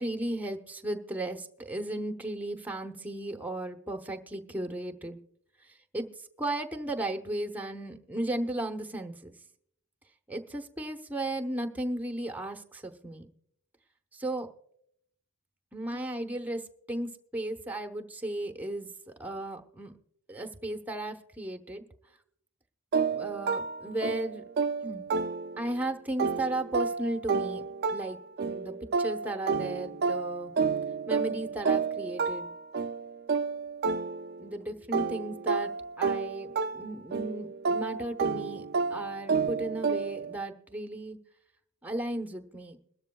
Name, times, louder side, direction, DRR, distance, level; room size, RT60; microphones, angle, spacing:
voice 1, 0.0-5.2 5.6-6.1 6.4-9.3 10.3-13.3 14.1-14.5 15.7-16.6 16.9-19.9 20.3-21.8 23.1-24.4 24.8-25.1 25.6-27.6 27.9-28.2 28.4-30.5 31.1-32.5 34.4-35.7 36.0-38.7 38.9-41.2 41.8-42.8, right 1 dB, 10° right, 5 dB, 0.9 m, -35 dB
sound 1, 22.9-25.8 26.2-34.5 34.9-40.4, right 5 dB, 50° right, 0.4 m, -31 dB
21.5 x 13.0 x 2.3 m, 0.70 s
head